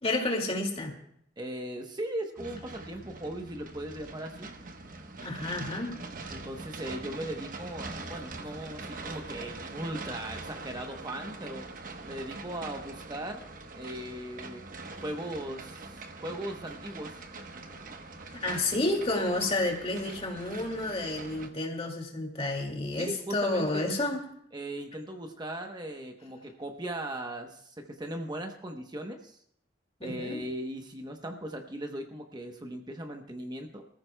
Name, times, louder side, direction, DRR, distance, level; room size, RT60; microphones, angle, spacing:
voice 1, 0.0-1.0 5.2-6.0 18.4-24.2 30.0-30.4, left 2 dB, 35° left, 2 dB, 2.2 m, -30 dB
voice 2, 1.4-4.5 6.3-11.7 12.0-13.5 13.7-14.6 14.9-17.2 23.0-23.9 24.5-29.4 30.0-33.9, right 1 dB, 25° right, 4 dB, 0.9 m, -38 dB
sound 1, 2.4-21.5, right 3 dB, 50° right, 1.1 m, -43 dB
25.0 x 14.5 x 2.2 m, 0.67 s
head